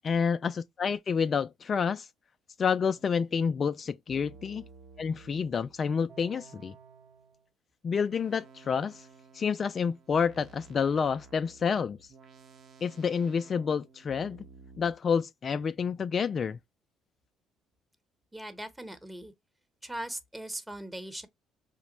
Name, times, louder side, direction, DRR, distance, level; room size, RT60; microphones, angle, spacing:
voice 1, 0.0-2.1 2.6-4.6 5.0-6.7 7.8-9.1 9.3-12.0 12.8-14.4 14.8-16.6, left 6 dB, 45° left, 0.3 m, -29 dB
sound 1, 2.9-3.3 4.1-7.5 8.1-14.9, right 5 dB, 60° right, 0.8 m, -54 dB
voice 2, 18.3-19.3 19.8-21.3, right 1 dB, 10° right, 1.0 m, -39 dB
4.9 x 2.1 x 2.9 m
supercardioid pair, 65°, 0 cm